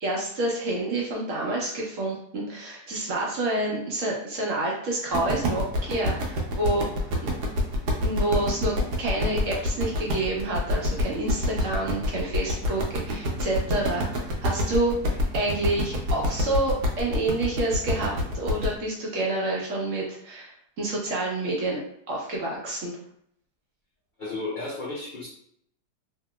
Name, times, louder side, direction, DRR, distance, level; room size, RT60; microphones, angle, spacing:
voice 1, 0.0-6.9 8.0-20.5 20.8-21.8 22.1-22.9, right 2 dB, 60° right, -3 dB, 1.0 m, -28 dB
sound 1, 5.1-18.7, left 1 dB, 80° right, 1.3 m, -27 dB
voice 2, 24.2-25.3, left 3 dB, 80° left, -6 dB, 0.4 m, -33 dB
2.9 x 2.8 x 2.2 m, 0.69 s
omnidirectional pair, 1.8 m